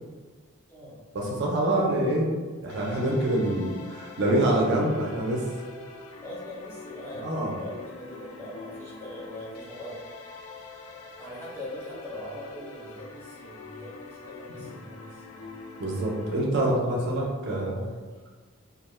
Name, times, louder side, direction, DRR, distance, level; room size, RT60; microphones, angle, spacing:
voice 1, 1.1-2.3 2.6-5.5 7.1-7.6 14.6-14.7 15.8-17.9, right 1 dB, 50° right, -2 dB, 0.4 m, -26 dB
sound 1, 2.7-16.4, left 3 dB, 75° left, 0.3 m, -44 dB
voice 2, 6.2-10.0 11.1-15.5 16.6-18.1, left 1 dB, 10° left, -7 dB, 0.5 m, -42 dB
2.3 x 2.1 x 3.0 m, 1.4 s
head